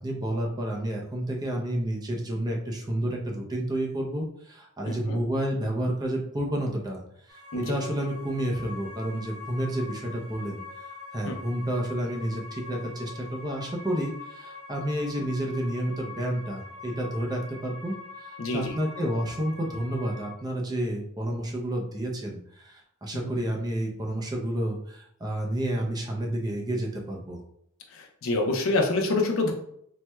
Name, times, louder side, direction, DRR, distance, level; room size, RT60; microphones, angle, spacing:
voice 1, 0.0-27.4, right 1 dB, 20° right, 0 dB, 0.4 m, -30 dB
voice 2, 4.9-5.2 7.5-7.8 11.3-11.4 18.4-18.7 23.1-23.3 27.9-29.5, left 2 dB, 65° left, 3 dB, 0.5 m, -27 dB
sound 1, 7.3-20.3, left 5 dB, 85° right, 0.9 m, -44 dB
4.3 x 2.1 x 2.2 m, 0.70 s
head